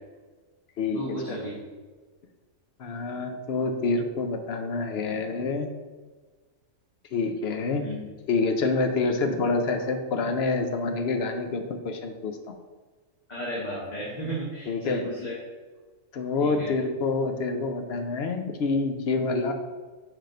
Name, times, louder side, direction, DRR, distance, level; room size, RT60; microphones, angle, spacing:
voice 1, 0.9-1.6 7.8-8.0 13.3-15.4 16.4-16.7, right 1 dB, 35° left, -7 dB, 1.2 m, -34 dB
voice 2, 2.8-5.7 7.1-7.8 8.3-12.6 14.7-15.1 16.1-19.5, left 3 dB, 55° left, 5 dB, 0.8 m, -27 dB
4.9 x 4.5 x 5.1 m, 1.4 s
omnidirectional pair, 1.4 m